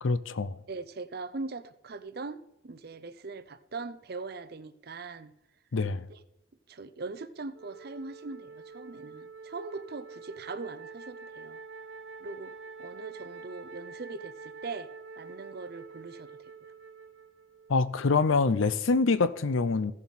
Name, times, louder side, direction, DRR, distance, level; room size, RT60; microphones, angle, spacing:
voice 1, 0.0-0.6 5.7-6.1 17.7-19.9, left 4 dB, 70° left, 0.6 m, -25 dB
voice 2, 0.7-5.3 6.1-6.2 6.7-11.6 12.2-14.9 15.2-16.5, right 3 dB, 50° right, 0.5 m, -41 dB
Wind instrument woodwind instrument, 7.5-17.9, right 4 dB, 75° right, 1.1 m, -46 dB
15.5 x 7.2 x 4.1 m
head